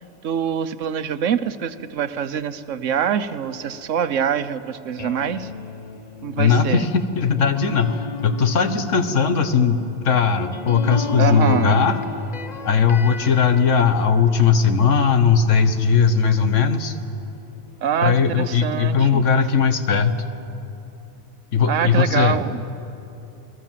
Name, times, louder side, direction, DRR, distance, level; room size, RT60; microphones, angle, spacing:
voice 1, 0.2-5.5 6.2-6.9 11.2-11.8 17.8-19.2 21.6-22.6, right 8 dB, 85° right, 12 dB, 1.2 m, -24 dB
sound 1, 2.9-15.4 15.9-18.8, left 4 dB, 35° left, 1.0 m, -36 dB
voice 2, 6.4-12.0 12.6-17.0 18.0-20.2 21.5-22.4, left 6 dB, 80° left, 9 dB, 1.5 m, -18 dB
29.0 x 20.5 x 7.5 m, 2.9 s
omnidirectional pair, 1.3 m